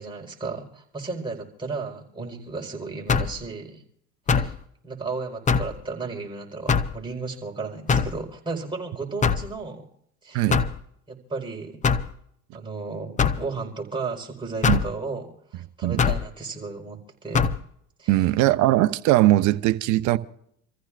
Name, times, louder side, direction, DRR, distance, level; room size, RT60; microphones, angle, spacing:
voice 1, 0.0-3.8 4.3-4.5 4.8-9.9 10.2-10.5 11.1-11.8 12.5-17.6 18.0-18.3, right 4 dB, 10° right, 4.5 m, -34 dB
sound 1, 3.1-3.4 4.3-4.6 5.5-5.8 6.7-7.0 7.9-8.2 9.2-9.5 10.5-10.8 11.8-12.1 13.2-13.4 14.6-14.9 16.0-16.2 17.3-17.6, left 5 dB, 20° left, 0.7 m, -22 dB
voice 2, 18.1-20.2, right 16 dB, 50° right, 0.9 m, -20 dB
28.5 x 14.5 x 2.5 m
hypercardioid pair, 100°, 38 cm